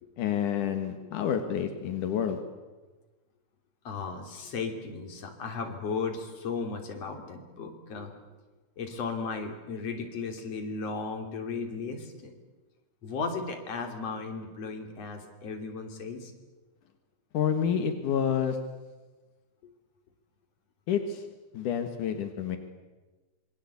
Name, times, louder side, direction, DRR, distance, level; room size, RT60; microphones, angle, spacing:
voice 1, 0.2-2.4 17.3-18.6 20.9-21.2 21.5-22.6, left 8 dB, 85° left, 6 dB, 3.1 m, -28 dB
voice 2, 3.8-8.1 8.8-12.3 13.0-16.3, left 4 dB, 55° left, 4 dB, 4.2 m, -35 dB
27.0 x 23.0 x 8.4 m, 1.2 s
omnidirectional pair, 3.5 m